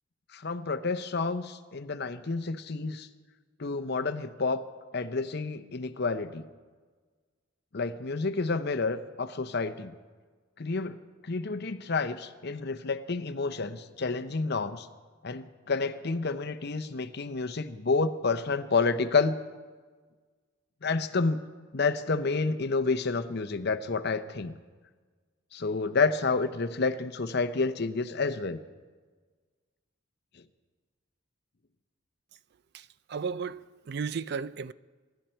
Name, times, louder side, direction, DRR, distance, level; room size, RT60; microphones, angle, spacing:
voice 1, 0.3-3.1 3.6-4.6 4.9-6.4 7.7-9.9 10.6-14.9 15.2-19.4 20.8-21.4 21.7-24.5 25.5-28.6, left 4 dB, 55° left, 0.7 m, -29 dB
voice 2, 32.7-34.7, right 5 dB, 50° right, 0.4 m, -35 dB
25.5 x 11.5 x 4.5 m
head